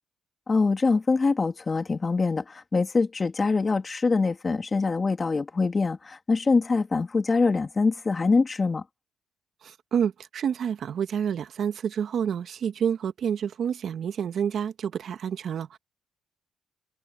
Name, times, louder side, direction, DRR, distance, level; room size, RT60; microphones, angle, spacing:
voice 1, 0.5-8.8, left 4 dB, 30° left, 2.9 m, -24 dB
voice 2, 9.6-15.8, right 8 dB, 60° right, 1.9 m, -28 dB
cardioid pair, 90°, 0 cm